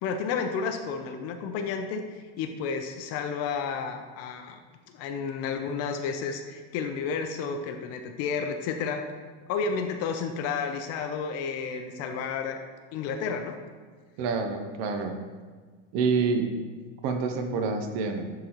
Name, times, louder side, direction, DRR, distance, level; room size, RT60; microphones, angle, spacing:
voice 1, 0.0-4.6 4.9-9.1 9.5-12.6 12.9-13.6, left 5 dB, 50° left, 6 dB, 0.6 m, -31 dB
voice 2, 14.2-15.2 15.9-16.5 17.0-18.2, right 4 dB, 55° right, 6 dB, 0.8 m, -27 dB
10.5 x 3.9 x 3.0 m, 1.5 s
supercardioid pair, 135°, 33 cm